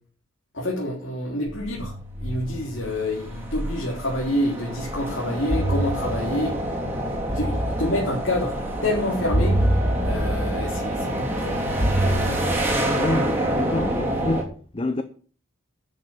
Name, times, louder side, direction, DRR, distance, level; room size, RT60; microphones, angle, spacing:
voice 1, 0.5-6.6 7.3-9.6 10.0-11.6 12.0-12.6, left 1 dB, 60° left, 4.2 m, -28 dB
sound 1, 1.5-14.4, right 1 dB, 10° right, 3.3 m, -25 dB
voice 2, 12.9-14.5 14.7-15.0, left 2 dB, 25° left, 0.8 m, -26 dB
11.5 x 7.7 x 7.7 m
head